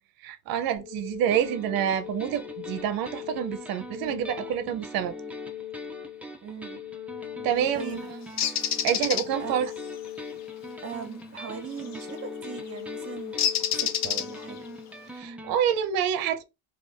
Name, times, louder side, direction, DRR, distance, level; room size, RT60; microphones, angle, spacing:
voice 1, 0.2-5.1 7.4-8.1 8.8-9.7 15.1-16.4, right 9 dB, 65° right, 0.6 m, -27 dB
sound 1, 0.8-15.8, left 12 dB, 80° left, 1.2 m, -41 dB
sound 2, 1.3-15.6, right 2 dB, 5° right, 0.4 m, -44 dB
voice 2, 6.4-6.8 7.7-8.1 9.4-9.5 10.8-13.3 13.8-14.6, right 6 dB, 35° right, 0.9 m, -39 dB
Bird, 8.4-9.2 11.9-12.1 13.4-14.6, left 9 dB, 45° left, 0.5 m, -27 dB
2.4 x 2.4 x 3.4 m
cardioid pair, 115°, 38 cm